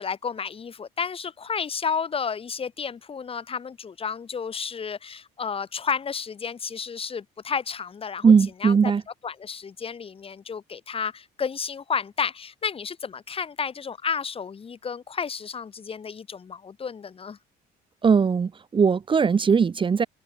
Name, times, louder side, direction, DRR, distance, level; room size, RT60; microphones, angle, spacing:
voice 1, 0.0-8.3 8.6-8.9 9.2-17.4, left 6 dB, 35° left, 2.9 m, -31 dB
voice 2, 8.2-9.0 18.0-20.1, right 6 dB, 30° right, 1.3 m, -19 dB
cardioid pair, 110°, 17 cm